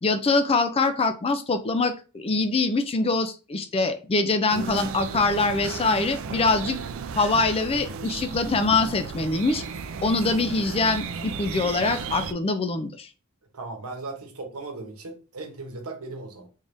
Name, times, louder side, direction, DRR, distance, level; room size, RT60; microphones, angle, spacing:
voice 1, 0.0-6.8 7.2-9.6 10.0-13.1, left 3 dB, 25° left, 0.4 m, -24 dB
sound 1, 4.5-12.3, right 5 dB, 65° right, 0.4 m, -34 dB
voice 2, 13.5-16.5, right 3 dB, 90° right, 1.0 m, -37 dB
3.7 x 3.4 x 2.6 m
head